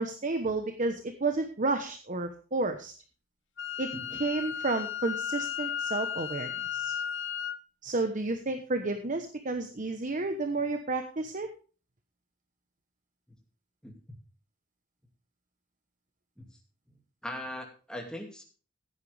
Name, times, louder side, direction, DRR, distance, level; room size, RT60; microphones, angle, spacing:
voice 1, 0.0-2.9 3.8-3.9 4.2-6.9 7.8-11.5, right 3 dB, 40° right, 7 dB, 1.0 m, -31 dB
Wind instrument woodwind instrument, 3.6-7.6, left 8 dB, 60° left, 0.8 m, -34 dB
voice 2, 3.9-4.2 13.8-13.9 16.4-16.5 17.2-18.4, left 1 dB, 5° left, 1 dB, 2.5 m, -40 dB
15.0 x 9.2 x 3.4 m, 0.38 s
head